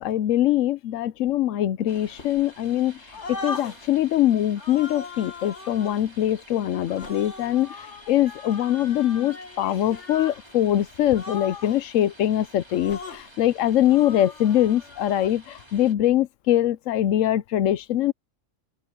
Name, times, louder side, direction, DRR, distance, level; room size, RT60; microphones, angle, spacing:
voice 1, 0.0-3.0 3.3-18.1, left 12 dB, 80° left, 1.0 m, -23 dB
sound 1, 1.9-15.9, right 1 dB, 20° right, 3.9 m, -50 dB
sound 2, 2.1-2.8 3.1-4.0 4.6-6.0 6.9-10.4 10.7-10.9 11.1-11.9 12.7-13.3 13.9-15.3, left 3 dB, 65° left, 2.1 m, -39 dB
open air
omnidirectional pair, 1.3 m